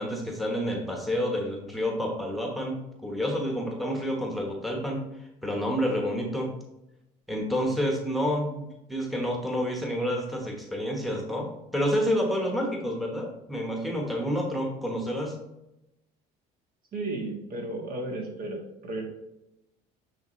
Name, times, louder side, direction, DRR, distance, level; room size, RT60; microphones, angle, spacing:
voice 1, 0.0-6.5 7.3-15.4, equal, ahead, 0 dB, 1.1 m, -29 dB
voice 2, 16.9-19.0, right 2 dB, 50° right, 1 dB, 1.5 m, -34 dB
8.8 x 3.5 x 3.1 m, 0.89 s
cardioid pair, 110°, 18 cm